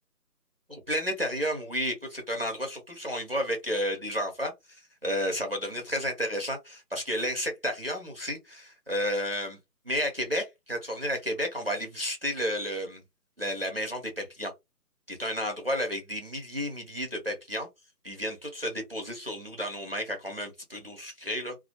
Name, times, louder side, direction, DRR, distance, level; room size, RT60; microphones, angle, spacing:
voice 1, 0.7-4.5 5.0-9.6 9.9-13.0 13.4-14.5 15.1-17.7 18.0-21.5, equal, 40° right, 0.6 m, -32 dB
2.1 x 2.1 x 2.7 m
hypercardioid pair, 180°, 47 cm